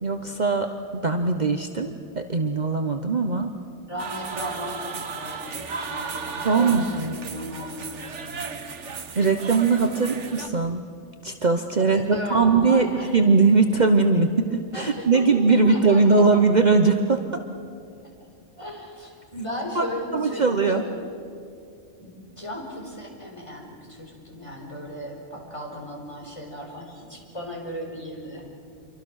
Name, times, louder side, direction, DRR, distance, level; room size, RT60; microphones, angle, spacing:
voice 1, 0.0-3.5 6.4-7.1 9.2-10.8 11.2-12.9 13.1-17.4 19.7-19.9 20.1-20.8, right 4 dB, 40° right, 6 dB, 1.1 m, -20 dB
voice 2, 3.9-8.7 10.0-10.2 11.8-13.1 14.7-16.2 18.0-18.1 18.6-20.9 22.0-28.5, left 1 dB, 25° left, -1 dB, 4.9 m, -36 dB
sound 1, 4.0-10.5, right 5 dB, 85° right, 1.6 m, -35 dB
28.0 x 24.0 x 6.5 m, 2.4 s
omnidirectional pair, 1.2 m